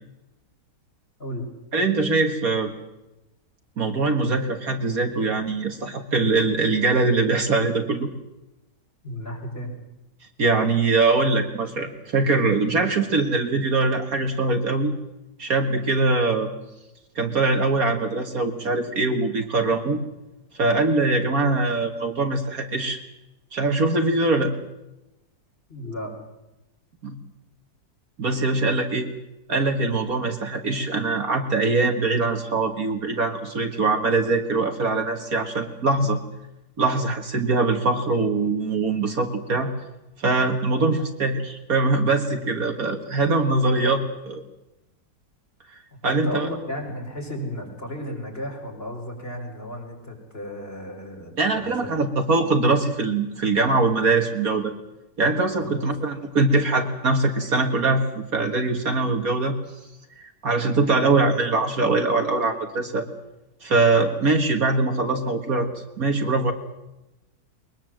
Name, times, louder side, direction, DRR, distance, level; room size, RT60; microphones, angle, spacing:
voice 1, 1.7-2.7 3.8-8.1 10.4-15.0 15.4-16.5 17.2-20.0 20.5-23.0 23.5-24.5 27.0-27.2 28.2-29.1 29.5-36.2 36.8-39.7 40.2-44.0 46.0-46.5 51.4-54.7 55.2-59.5 60.4-63.1 63.6-65.7 66.0-66.5, right 3 dB, 55° right, 5 dB, 2.1 m, -22 dB
voice 2, 9.0-9.7 25.7-26.1 40.7-40.8 43.6-44.0 46.0-52.0 55.6-55.9, equal, 35° left, 1 dB, 5.1 m, -34 dB
22.0 x 21.5 x 7.7 m, 0.95 s
omnidirectional pair, 1.9 m